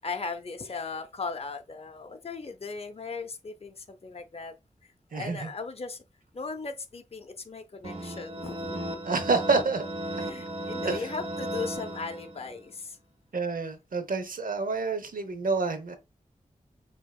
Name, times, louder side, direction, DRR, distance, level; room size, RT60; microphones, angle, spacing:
voice 1, 0.0-4.5 4.8-6.0 6.3-8.8 10.2-13.0, left 4 dB, 45° left, 0.6 m, -37 dB
voice 2, 5.1-5.5 9.0-9.8 10.1-10.2 10.8-11.1 13.3-16.0, right 4 dB, 80° right, 0.8 m, -28 dB
sound 1, 7.8-12.6, right 1 dB, 45° right, 1.1 m, -35 dB
6.1 x 2.9 x 2.3 m
cardioid pair, 40°, 14 cm